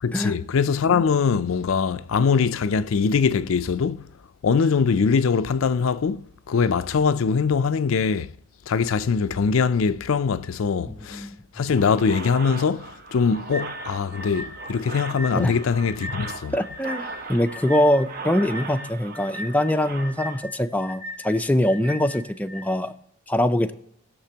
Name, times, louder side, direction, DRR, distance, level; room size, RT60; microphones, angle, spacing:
voice 1, 0.0-4.1 4.4-8.3 8.7-11.3 11.6-16.6, left 5 dB, 75° left, 0.4 m, -22 dB
voice 2, 10.8-11.4 15.3-15.5 16.5-22.9 23.3-23.7, left 1 dB, 10° left, 0.4 m, -23 dB
sound 1, 11.7-20.4, right 3 dB, 45° right, 0.9 m, -38 dB
sound 2, 13.5-22.7, left 1 dB, 25° right, 1.9 m, -38 dB
19.5 x 6.7 x 2.9 m
head